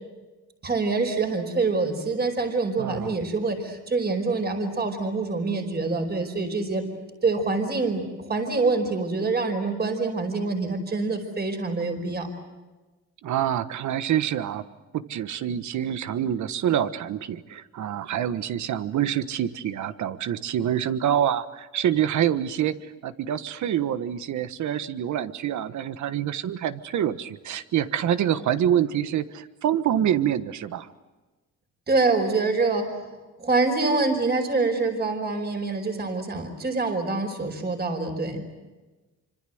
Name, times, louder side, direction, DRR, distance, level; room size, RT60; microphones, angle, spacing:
voice 1, 0.6-6.9 7.2-12.3 31.9-33.0 33.4-38.4, right 3 dB, 35° right, 5 dB, 5.0 m, -25 dB
voice 2, 2.8-3.2 13.2-14.6 14.9-30.9, right 10 dB, 70° right, 12 dB, 1.4 m, -26 dB
26.5 x 25.0 x 7.9 m, 1.2 s
cardioid pair, 90°, 30 cm